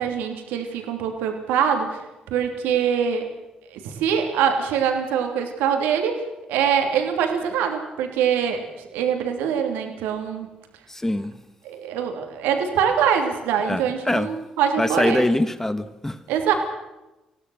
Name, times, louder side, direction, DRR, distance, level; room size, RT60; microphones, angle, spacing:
voice 1, 0.0-3.3 3.7-6.2 6.5-8.7 8.9-10.5 11.6-15.2 16.3-16.5, right 7 dB, 70° right, 4 dB, 3.1 m, -23 dB
voice 2, 10.9-11.4 13.6-14.3 14.8-16.2, left 1 dB, 10° left, 12 dB, 1.6 m, -23 dB
27.5 x 17.0 x 6.5 m, 0.97 s
figure-of-eight pair, 45°, 3 cm